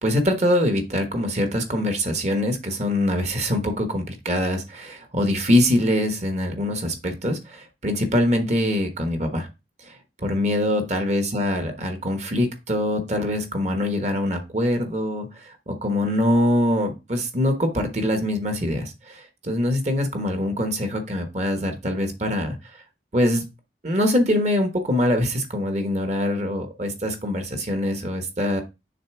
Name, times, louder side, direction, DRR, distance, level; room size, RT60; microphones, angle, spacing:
voice 1, 0.0-9.5 10.2-22.6 23.1-23.4 23.8-28.6, left 1 dB, 40° right, 5 dB, 1.1 m, -23 dB
6.6 x 3.3 x 4.7 m, 0.26 s
head